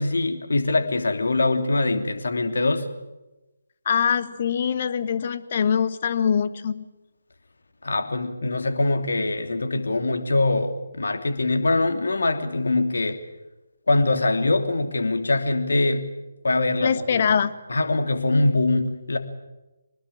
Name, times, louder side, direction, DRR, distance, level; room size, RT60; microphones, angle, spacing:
voice 1, 0.0-2.9 7.8-13.2 13.9-16.1 16.4-17.2 17.7-19.2, left 2 dB, 60° left, 6 dB, 3.0 m, -23 dB
voice 2, 3.8-6.9 16.8-17.6, left 7 dB, 40° left, 13 dB, 1.4 m, -23 dB
25.5 x 20.5 x 8.8 m, 1.0 s
figure-of-eight pair, 150°, 0 cm